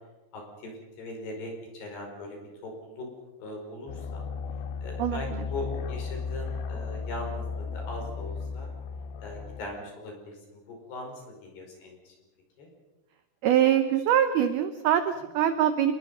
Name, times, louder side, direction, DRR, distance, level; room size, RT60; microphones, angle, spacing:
voice 1, 0.3-3.1 3.4-4.3 4.8-8.7 9.2-12.2 12.6-12.7, left 1 dB, 55° left, 1 dB, 7.1 m, -40 dB
sound 1, 3.9-9.6, left 5 dB, 85° left, 3.8 m, -35 dB
voice 2, 13.4-15.9, right 10 dB, 80° right, 10 dB, 2.2 m, -23 dB
27.0 x 21.5 x 5.5 m, 1.1 s
omnidirectional pair, 5.7 m